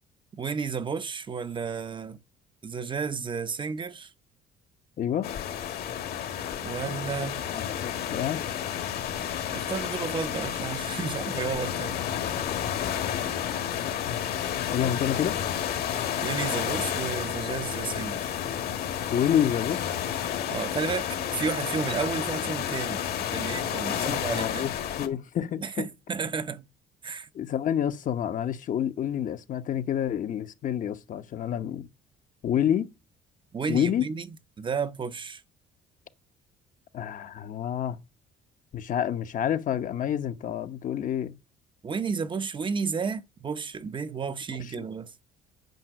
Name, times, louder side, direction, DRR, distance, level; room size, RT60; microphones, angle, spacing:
voice 1, 0.3-2.2 2.6-4.1 6.6-7.5 9.5-12.0 16.2-18.3 20.5-24.7 25.6-26.7 27.0-27.3 33.5-34.3 34.6-35.4 41.8-45.1, right 5 dB, 30° right, 0.7 m, -32 dB
voice 2, 5.0-5.3 7.5-8.5 14.1-14.2 14.7-15.4 19.1-19.9 24.0-24.7 25.0-25.9 27.3-31.9 32.4-32.9 33.7-34.1 36.9-38.0 38.7-41.3 44.8-44.9, left 10 dB, 50° left, 0.9 m, -28 dB
sound 1, 5.2-25.1, left 9 dB, 65° left, 1.7 m, -31 dB
9.3 x 5.6 x 8.0 m
cardioid pair, 110°, 17 cm